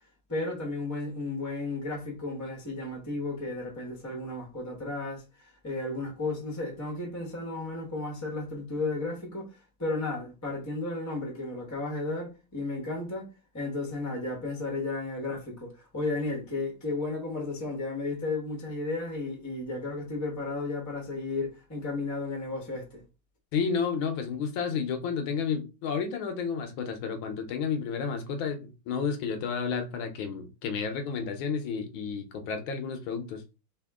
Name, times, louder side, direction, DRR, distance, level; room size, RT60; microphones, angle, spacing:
voice 1, 0.3-23.0, left 2 dB, 25° left, 0.4 m, -34 dB
voice 2, 23.5-33.4, left 6 dB, 80° left, 1.4 m, -31 dB
3.5 x 2.8 x 3.5 m
omnidirectional pair, 2.3 m